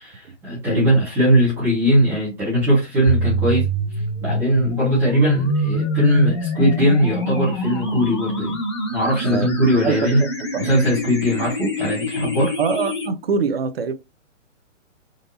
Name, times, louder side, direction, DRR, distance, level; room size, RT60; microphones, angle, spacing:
voice 1, 0.0-8.6 8.9-10.2 10.6-12.6, equal, 5° right, 0.9 m, -20 dB
sound 1, 3.1-13.1, equal, 20° left, 0.5 m, -25 dB
voice 2, 9.2-10.7 12.6-13.9, right 5 dB, 50° right, 0.6 m, -25 dB
3.9 x 2.6 x 2.7 m
hypercardioid pair, 170°, 38 cm